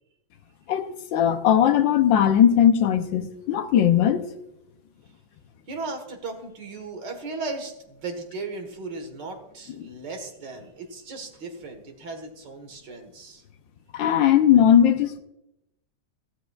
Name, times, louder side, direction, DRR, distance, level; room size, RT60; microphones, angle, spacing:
voice 1, 0.7-4.3 13.9-15.2, left 9 dB, 75° left, 1.5 m, -19 dB
voice 2, 5.7-13.4, right 3 dB, 65° right, 2.2 m, -36 dB
15.5 x 13.0 x 2.4 m
omnidirectional pair, 2.1 m